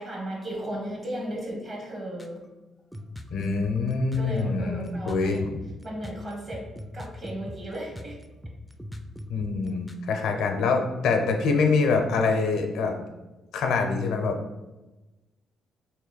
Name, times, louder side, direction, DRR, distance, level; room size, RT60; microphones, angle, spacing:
voice 1, 0.0-2.5 3.4-3.6 4.1-5.4 5.8-6.7 6.9-8.2, right 1 dB, 40° right, -1 dB, 1.2 m, -35 dB
sound 1, 2.2-2.5 2.9-10.1, equal, 5° left, 0.4 m, -39 dB
voice 2, 3.3-5.6 9.3-13.0 13.5-14.4, left 4 dB, 80° left, 4 dB, 0.5 m, -25 dB
3.0 x 3.0 x 3.9 m, 1.1 s
cardioid pair, 90°, 0 cm